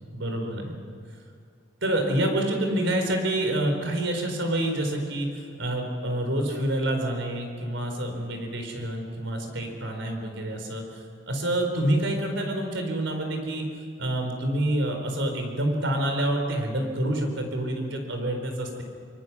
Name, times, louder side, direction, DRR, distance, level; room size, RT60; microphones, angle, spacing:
voice 1, 0.1-0.8 1.8-13.6 14.0-18.8, right 1 dB, 80° right, 4 dB, 4.2 m, -27 dB
24.5 x 24.0 x 6.1 m, 2.1 s
head